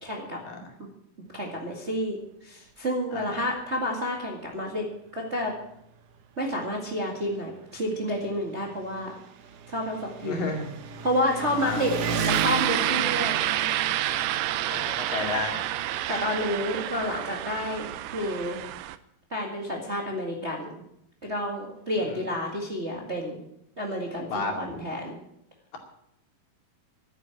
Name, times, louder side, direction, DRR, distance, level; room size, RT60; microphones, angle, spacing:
voice 1, 0.0-0.4 0.8-0.9 1.3-4.9 5.1-5.5 6.4-9.1 9.7-10.5 11.0-12.0 12.2-13.4 16.1-18.6 19.3-20.8 21.2-23.4 23.8-25.1, equal, 25° right, 0 dB, 1.7 m, -30 dB
Engine, 3.6-3.7 4.1-4.2 5.1-5.2 5.4-18.1, right 5 dB, 65° right, 1.6 m, -37 dB
voice 2, 10.2-10.7 11.4-11.8 14.7-15.6 22.0-22.2 24.3-24.5, left 3 dB, 75° left, 2 dB, 4.1 m, -32 dB
sound 1, 12.3-19.0, right 14 dB, 85° right, 2.4 m, -29 dB
12.0 x 9.9 x 9.1 m, 0.78 s
omnidirectional pair, 4.0 m